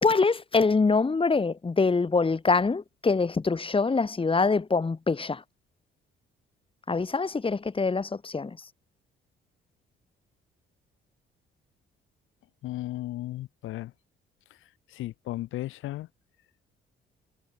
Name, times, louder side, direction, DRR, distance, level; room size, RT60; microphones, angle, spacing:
voice 1, 0.0-5.4 6.9-8.6, left 4 dB, 25° left, 3.9 m, -24 dB
voice 2, 12.6-13.9 15.0-16.1, left 15 dB, 90° left, 6.5 m, -35 dB
cardioid pair, 90°, 20 cm